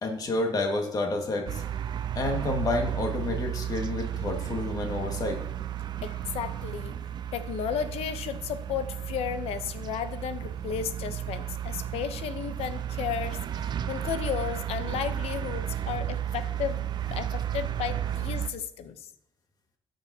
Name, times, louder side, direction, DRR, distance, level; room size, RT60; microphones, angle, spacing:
voice 1, 0.0-1.6 2.2-5.4, left 2 dB, 40° left, 3 dB, 1.8 m, -29 dB
sound 1, 1.5-18.5, right 10 dB, 45° right, 0.5 m, -33 dB
voice 2, 6.0-6.9 7.3-19.1, left 8 dB, 80° left, 10 dB, 0.8 m, -34 dB
18.0 x 6.8 x 2.8 m, 0.77 s
cardioid pair, 125°, 10 cm